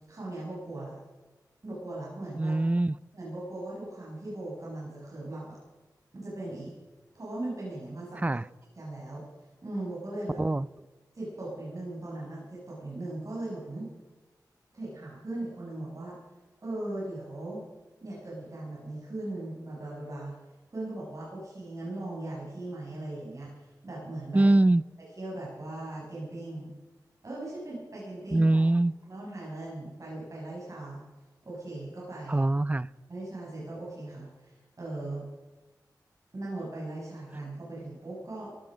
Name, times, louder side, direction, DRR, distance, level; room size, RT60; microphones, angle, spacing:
voice 1, 0.1-1.0 1.6-2.5 3.1-5.6 6.1-6.7 7.1-8.4 8.8-9.2 9.6-10.4 11.1-13.9 14.7-16.2 16.6-17.6 18.0-20.3 20.7-24.4 25.2-26.7 27.2-28.6 29.1-31.0 31.4-32.4 33.1-35.2 36.3-38.5, right 2 dB, 50° right, -6 dB, 7.0 m, -38 dB
voice 2, 2.4-3.0 8.2-8.5 10.4-10.7 24.3-24.8 28.3-28.9 32.3-32.9, right 2 dB, 20° right, 21 dB, 0.4 m, -23 dB
18.0 x 14.0 x 5.2 m, 1.2 s
cardioid pair, 65°, 7 cm